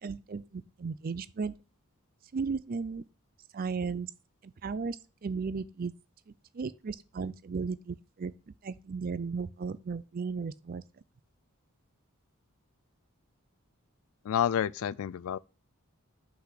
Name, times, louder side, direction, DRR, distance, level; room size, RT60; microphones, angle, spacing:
voice 1, 0.0-1.5 2.3-3.0 3.5-4.1 4.4-5.0 5.2-5.9 6.5-8.3 8.6-10.8, right 5 dB, 40° right, 0.4 m, -35 dB
voice 2, 14.2-15.4, left 9 dB, 70° left, 0.3 m, -29 dB
5.7 x 4.0 x 5.7 m
head